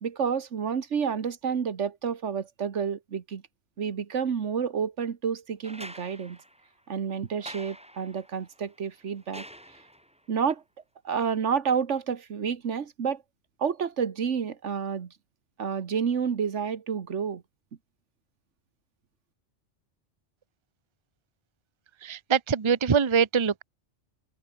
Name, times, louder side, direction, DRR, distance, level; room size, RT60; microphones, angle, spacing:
voice 1, 0.0-3.4 3.8-6.4 6.9-9.4 10.3-10.6 11.0-13.2 13.6-15.1 15.6-17.4, right 7 dB, 80° right, 1.6 m, -29 dB
sound 1, 5.6-10.3 11.8-11.9, equal, 5° right, 2.7 m, -47 dB
voice 2, 22.0-23.6, right 6 dB, 30° right, 0.8 m, -24 dB
omnidirectional pair, 1.2 m